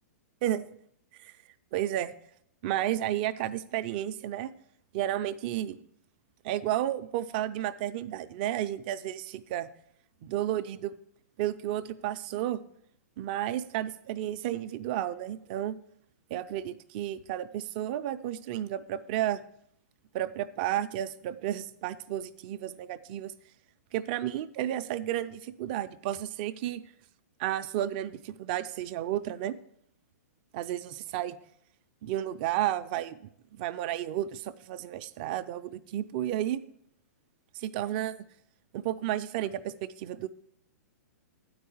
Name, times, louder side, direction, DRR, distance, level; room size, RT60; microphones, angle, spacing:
voice 1, 1.7-2.1 2.6-4.5 4.9-5.8 6.4-9.7 10.2-10.9 11.4-12.6 13.2-15.8 16.3-19.4 20.1-23.3 23.9-26.8 27.4-29.5 30.5-31.4 32.0-33.2 33.6-36.6 37.5-38.2 38.7-40.3, right 12 dB, 35° right, 12 dB, 0.4 m, -32 dB
9.0 x 4.7 x 7.1 m, 0.71 s
hypercardioid pair, 160°, 9 cm